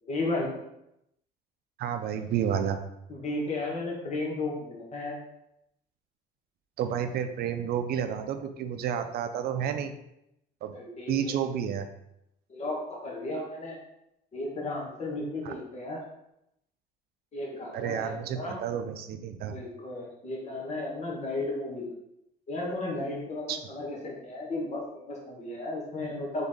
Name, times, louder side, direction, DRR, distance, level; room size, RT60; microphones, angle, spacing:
voice 1, 0.0-0.5 3.1-5.2 10.7-11.3 12.5-12.8 13.0-13.8 14.3-16.0 17.3-18.6 19.5-21.9 22.5-26.4, left 2 dB, 40° left, -3 dB, 1.7 m, -34 dB
voice 2, 1.8-2.8 6.8-10.0 10.6-10.8 11.1-11.9 15.4-15.5 17.7-19.5 23.5-23.6, right 8 dB, 65° right, 8 dB, 0.5 m, -30 dB
3.9 x 3.6 x 3.7 m, 0.82 s
cardioid pair, 110°, 17 cm